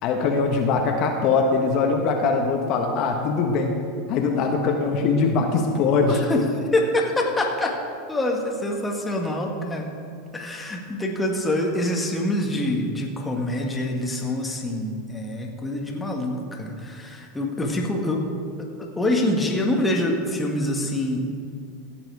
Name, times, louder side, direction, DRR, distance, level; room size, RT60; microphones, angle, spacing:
voice 1, 0.0-3.8 4.1-6.2, left 4 dB, 50° left, 3 dB, 1.2 m, -22 dB
voice 2, 6.0-6.5 6.7-7.8 8.1-9.9 10.3-18.3 18.6-21.4, left 1 dB, 10° left, 0 dB, 1.7 m, -25 dB
15.0 x 7.8 x 4.8 m, 2.3 s
hypercardioid pair, 110°, 0 cm